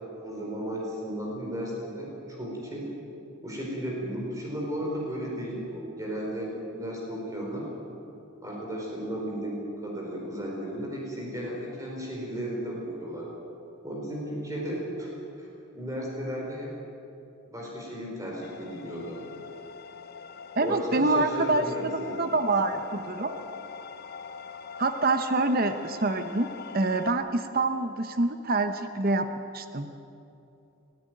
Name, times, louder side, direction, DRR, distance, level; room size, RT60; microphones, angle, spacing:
voice 1, 0.2-2.9 3.4-7.7 8.4-13.3 13.8-15.5 15.7-16.7 17.5-19.2 20.6-22.3 23.2-23.5, equal, 15° right, -3 dB, 4.7 m, -34 dB
sound 1, 18.4-27.1, left 6 dB, 45° left, 0.6 m, -42 dB
voice 2, 20.6-23.3 24.8-26.5 26.7-29.3 29.5-29.9, right 2 dB, 40° right, 8 dB, 0.9 m, -26 dB
22.0 x 14.0 x 9.4 m, 2.8 s
head